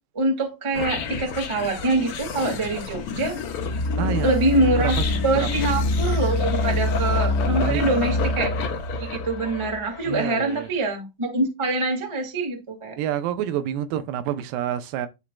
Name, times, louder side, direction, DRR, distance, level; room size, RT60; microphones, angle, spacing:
voice 1, 0.1-3.4 4.2-8.5 9.0-13.0, right 2 dB, 20° right, 0.7 m, -24 dB
sound 1, 0.7-10.0, left 3 dB, 80° left, 1.2 m, -26 dB
voice 2, 4.0-4.4 5.0-5.1 5.3-5.8 7.6-7.9 10.1-10.7 13.0-15.1, right 10 dB, 80° right, 2.5 m, -28 dB
11.0 x 4.2 x 2.3 m
omnidirectional pair, 4.1 m